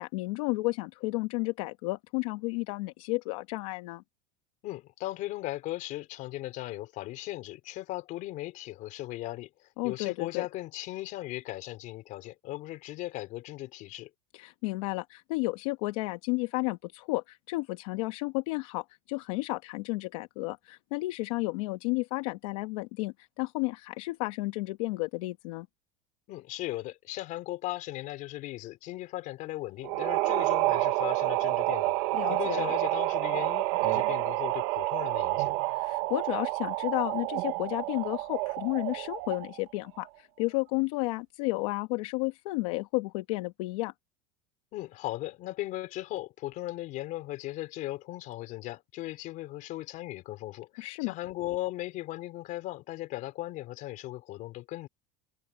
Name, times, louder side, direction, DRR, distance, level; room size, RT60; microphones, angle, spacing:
voice 1, 0.0-4.0 9.8-10.5 14.3-25.7 32.1-32.7 35.6-43.9 50.8-51.1, left 24 dB, 70° left, 1.4 m, -32 dB
voice 2, 4.6-14.1 26.3-32.0 32.3-35.6 44.7-54.9, left 17 dB, 45° left, 4.2 m, -37 dB
sound 1, 29.8-39.6, right 21 dB, 60° right, 1.0 m, -29 dB
cardioid pair, 160°, 18 cm